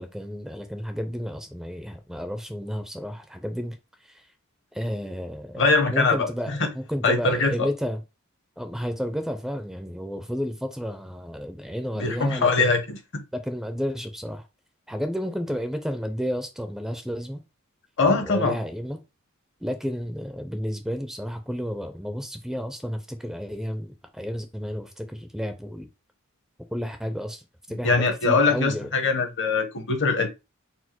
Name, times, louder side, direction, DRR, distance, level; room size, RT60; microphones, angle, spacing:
voice 1, 0.0-3.8 4.1-4.2 4.7-8.0 8.6-12.8 13.3-14.4 14.9-17.4 18.0-19.0 19.6-25.9 26.7-27.4 27.7-28.0 28.2-28.9, equal, ahead, 0.4 m, -32 dB
voice 2, 5.6-6.7 7.0-7.7 12.0-13.2 18.0-18.5 27.8-30.3, left 3 dB, 60° left, 0.9 m, -22 dB
4.3 x 2.0 x 4.3 m
head